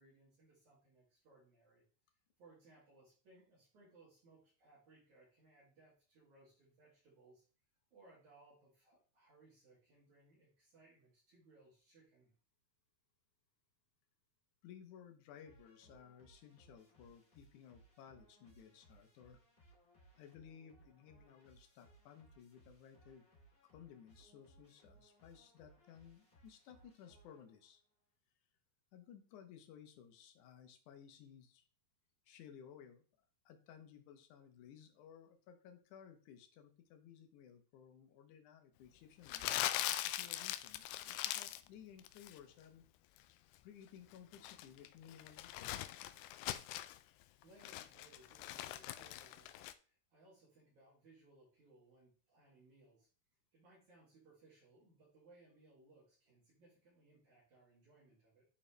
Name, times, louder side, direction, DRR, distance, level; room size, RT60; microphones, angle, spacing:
voice 1, 0.0-1.8 2.4-7.4 7.9-12.3 47.4-53.1 53.5-58.4, right 2 dB, 50° right, -7 dB, 3.8 m, -66 dB
voice 2, 14.6-19.4 20.2-23.3 23.6-27.8 28.9-31.7 32.3-33.0 33.5-42.8 43.6-45.8, left 8 dB, 70° left, 6 dB, 2.0 m, -58 dB
sound 1, 15.4-27.8, right 2 dB, 20° left, 1.7 m, -67 dB
Crumpling crinkling, 39.3-41.7 42.0-42.4 44.1-47.0 47.4-49.7, left 14 dB, 90° left, 2.6 m, -41 dB
11.0 x 4.3 x 3.3 m, 0.39 s
omnidirectional pair, 4.5 m